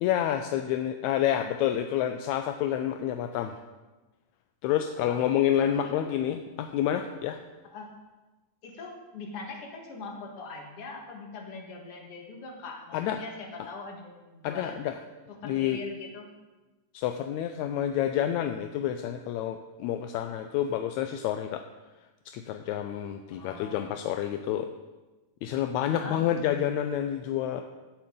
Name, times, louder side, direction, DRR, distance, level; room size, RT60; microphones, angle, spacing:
voice 1, 0.0-3.6 4.6-7.4 12.9-13.2 14.4-14.9 15.4-15.8 16.9-21.6 22.3-24.7 25.4-27.6, left 10 dB, 80° left, 7 dB, 1.7 m, -28 dB
voice 2, 4.9-5.3 5.6-6.1 7.6-7.9 8.6-14.9 15.3-16.2 23.3-24.2 25.9-26.2, left 3 dB, 50° left, 1 dB, 2.3 m, -42 dB
16.5 x 7.2 x 3.8 m, 1.2 s
omnidirectional pair, 3.6 m